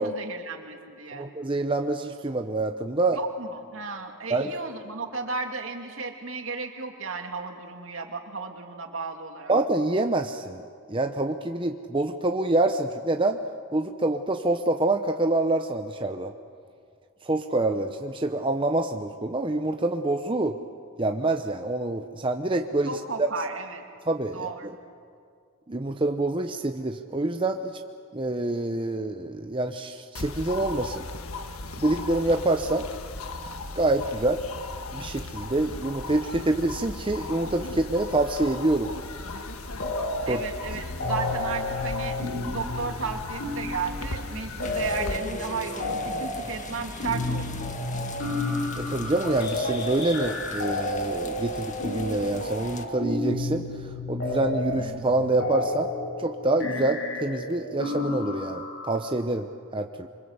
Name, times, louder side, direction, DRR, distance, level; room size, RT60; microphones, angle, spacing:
voice 1, 0.0-1.3 3.1-9.5 22.8-23.8 24.3-24.8 40.3-42.2 42.5-47.7, right 4 dB, 65° right, 4 dB, 2.6 m, -34 dB
voice 2, 1.1-3.2 4.3-4.5 9.5-10.6 10.9-13.4 13.7-16.3 17.2-20.6 21.0-23.3 24.1-24.7 25.7-27.8 28.1-31.1 31.8-32.9 33.7-34.4 34.9-38.9 40.3-40.4 48.8-55.9 56.2-60.1, right 2 dB, 25° right, 5 dB, 0.8 m, -26 dB
sound 1, 30.1-45.2, left 3 dB, 90° left, 1.5 m, -37 dB
sound 2, 39.8-40.4 40.7-59.0, left 2 dB, 55° left, 4.7 m, -31 dB
sound 3, 44.6-52.9, left 2 dB, 35° left, 1.8 m, -39 dB
26.5 x 24.5 x 8.1 m, 2.2 s
head